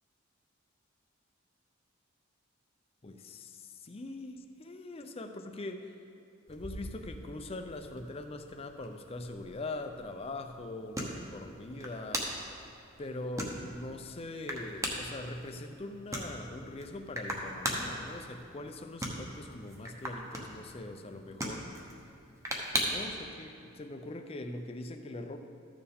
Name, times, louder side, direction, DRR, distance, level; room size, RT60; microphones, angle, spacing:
voice 1, 3.0-5.9 6.5-12.3 13.0-21.7 22.7-25.4, left 2 dB, 30° left, 6 dB, 0.5 m, -42 dB
sound 1, 6.5-23.2, equal, 15° right, 1.0 m, -40 dB
13.5 x 6.9 x 3.5 m, 2.6 s
head